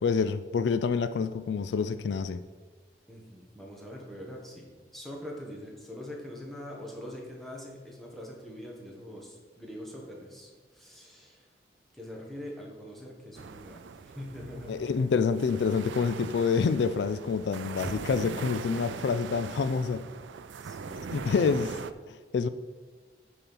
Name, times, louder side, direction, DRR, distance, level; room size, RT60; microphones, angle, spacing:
voice 1, 0.0-2.4 14.7-20.1 21.1-21.8 22.1-22.5, left 5 dB, 70° left, 0.3 m, -27 dB
voice 2, 3.1-11.5 11.9-13.9 14.1-15.1 20.6-21.3, left 1 dB, ahead, 1.4 m, -43 dB
sound 1, 13.3-21.9, right 5 dB, 85° right, 0.4 m, -41 dB
9.0 x 4.4 x 5.4 m
head